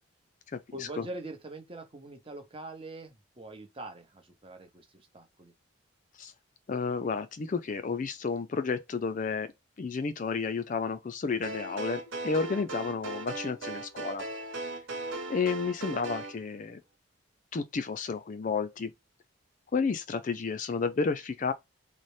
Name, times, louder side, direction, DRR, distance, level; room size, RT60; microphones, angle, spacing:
voice 1, 0.7-5.5, right 2 dB, 25° right, 0.8 m, -43 dB
voice 2, 6.7-9.5 9.8-14.2 15.3-16.8 17.5-18.9 19.7-21.5, left 5 dB, 40° left, 0.3 m, -31 dB
sound 1, 11.4-16.4, right 2 dB, 65° right, 1.1 m, -38 dB
4.1 x 2.0 x 3.1 m
head